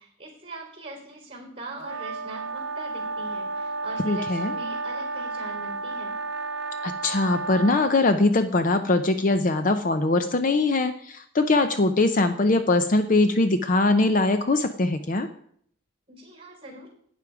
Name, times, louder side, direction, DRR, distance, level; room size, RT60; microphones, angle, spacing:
voice 1, 0.0-6.1 16.1-16.9, right 2 dB, 25° right, 1 dB, 4.1 m, -41 dB
sound 1, 1.8-8.1, right 3 dB, 60° right, 1.1 m, -32 dB
voice 2, 4.1-4.5 6.8-15.3, left 2 dB, 40° left, 9 dB, 0.5 m, -22 dB
12.0 x 9.3 x 4.8 m, 0.63 s
head